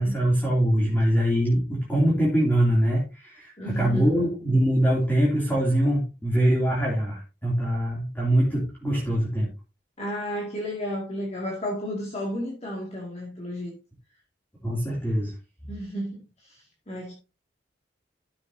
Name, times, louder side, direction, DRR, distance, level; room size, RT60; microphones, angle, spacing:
voice 1, 0.0-9.5 14.6-15.4, right 1 dB, 10° left, 2.8 m, -23 dB
voice 2, 3.6-4.1 10.0-13.7 15.7-17.1, equal, 40° left, 2.2 m, -33 dB
12.5 x 7.1 x 2.7 m
head